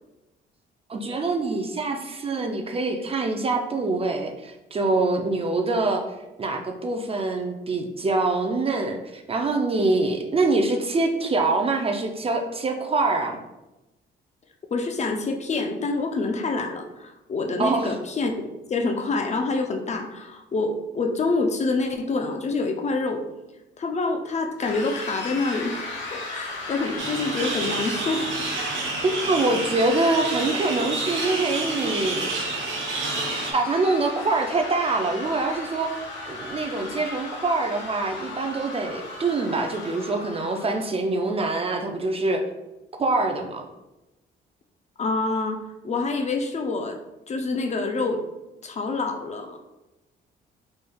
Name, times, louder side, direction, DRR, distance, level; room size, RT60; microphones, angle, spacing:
voice 1, 0.9-6.0 6.4-13.4 17.6-17.9 29.0-32.3 33.5-36.0 36.3-42.4 43.0-43.7, right 3 dB, 30° right, 4 dB, 0.4 m, -25 dB
voice 2, 14.7-23.2 23.8-28.3 45.0-45.6 45.8-47.0 47.3-48.2 48.6-49.6, left 3 dB, 35° left, 5 dB, 0.4 m, -27 dB
sound 1, 24.6-40.9, left 2 dB, 70° left, 1.1 m, -36 dB
sound 2, 27.0-33.5, right 3 dB, 80° right, 0.7 m, -29 dB
3.3 x 3.1 x 2.2 m, 0.98 s
cardioid pair, 90°, 20 cm